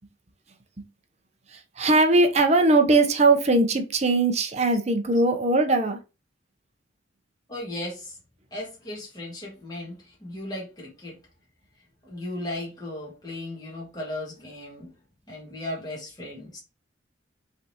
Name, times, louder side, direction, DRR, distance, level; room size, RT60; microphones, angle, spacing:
voice 1, 1.5-6.0, right 2 dB, 35° right, 0.6 m, -20 dB
voice 2, 7.5-8.1 8.5-11.1 12.0-14.9 15.3-16.6, left 1 dB, 20° left, 1.7 m, -36 dB
5.3 x 3.4 x 2.8 m
head